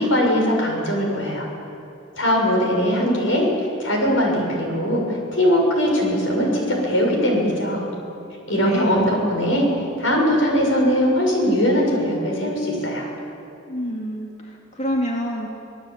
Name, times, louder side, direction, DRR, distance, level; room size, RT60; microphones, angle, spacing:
voice 1, 0.0-1.5 2.2-3.5 3.8-7.9 8.5-9.7 10.0-13.1, equal, 85° left, 0 dB, 6.9 m, -20 dB
voice 2, 8.6-9.0 13.7-15.5, equal, 35° left, -1 dB, 2.4 m, -27 dB
26.5 x 18.0 x 8.8 m, 2.8 s
head